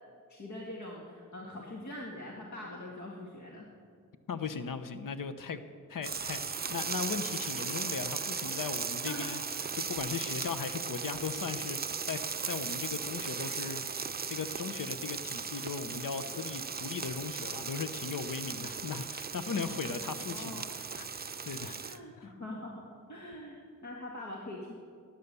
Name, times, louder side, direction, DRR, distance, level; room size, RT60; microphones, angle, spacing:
voice 1, 0.3-3.7 9.0-9.3 9.6-9.8 20.3-20.6 21.8-24.7, left 1 dB, 60° left, -3 dB, 1.9 m, -43 dB
voice 2, 4.3-5.6 5.9-9.4 9.7-21.8 22.2-22.3, left 5 dB, 75° left, 9 dB, 0.9 m, -38 dB
sound 1, 6.0-22.0, right 5 dB, 30° right, 0.6 m, -37 dB
19.5 x 9.4 x 6.9 m, 2.2 s
wide cardioid pair, 105°, 33 cm